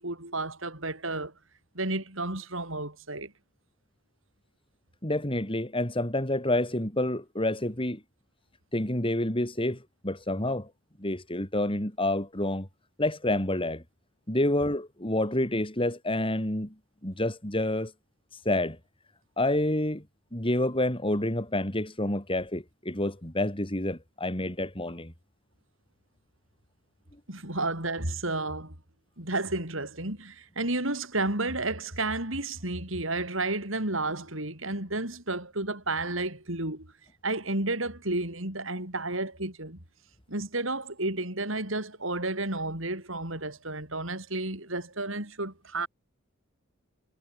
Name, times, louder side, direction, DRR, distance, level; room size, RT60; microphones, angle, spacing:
voice 1, 0.0-1.3 1.7-3.3 27.3-28.7 29.2-36.9 37.2-39.8 40.3-45.9, right 2 dB, 65° right, 7.4 m, -32 dB
voice 2, 5.0-8.0 8.7-10.7 11.0-12.7 13.0-13.8 14.3-16.7 17.0-17.9 18.3-18.8 19.4-20.0 20.3-25.1, left 1 dB, 25° left, 4.6 m, -28 dB
head